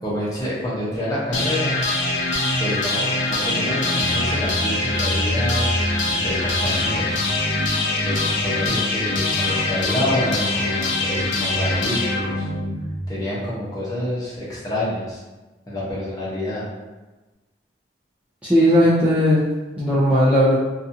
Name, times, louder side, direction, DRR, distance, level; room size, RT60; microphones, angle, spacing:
voice 1, 0.0-1.8 2.6-5.6 6.1-7.2 8.0-12.5 13.1-15.2 15.7-16.6, left 1 dB, 20° left, -8 dB, 0.7 m, -28 dB
sound 1, 1.3-13.3, left 2 dB, 85° left, 0.6 m, -23 dB
voice 2, 18.4-19.4 19.8-20.6, equal, 5° right, -11 dB, 0.4 m, -16 dB
2.6 x 2.3 x 2.6 m, 1.2 s
head